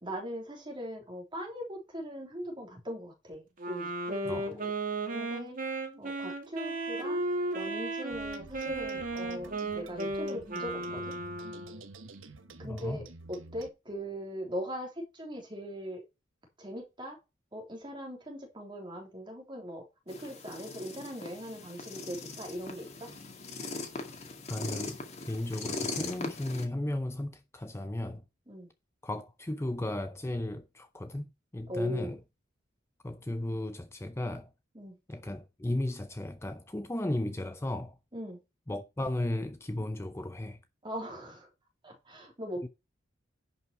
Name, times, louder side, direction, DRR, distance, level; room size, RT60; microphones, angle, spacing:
voice 1, 0.0-4.7 5.1-5.6 6.0-7.2 7.5-11.1 12.6-16.0 16.6-17.2 17.5-23.1 28.5-28.7 31.7-32.2 34.8-35.0 38.1-38.4 40.8-41.5 41.8-42.7, equal, 25° right, 3.4 m, -40 dB
Wind instrument woodwind instrument, 3.6-11.8, right 2 dB, 45° right, 2.4 m, -35 dB
voice 2, 4.2-4.6 12.6-13.0 24.5-28.2 29.0-32.2 33.0-34.5 35.1-38.0 38.7-40.6 42.6-42.7, left 1 dB, 15° left, 0.6 m, -35 dB
sound 1, 8.1-13.7, right 3 dB, 85° right, 1.2 m, -49 dB
sound 2, 20.1-26.7, left 3 dB, 35° left, 2.1 m, -40 dB
10.5 x 5.6 x 4.7 m
head